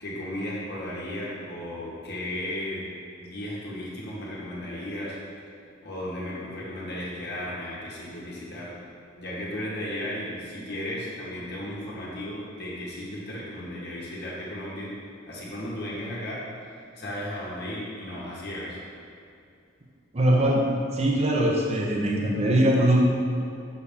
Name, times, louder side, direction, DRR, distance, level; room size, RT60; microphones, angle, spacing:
voice 1, 0.0-2.9 3.2-5.2 5.8-8.7 9.2-15.0 15.3-16.4 17.0-18.8, left 1 dB, 50° left, -6 dB, 1.6 m, -35 dB
voice 2, 20.1-20.6 20.9-23.0, right 1 dB, 30° right, -2 dB, 0.8 m, -21 dB
7.0 x 6.6 x 3.5 m, 2.5 s
head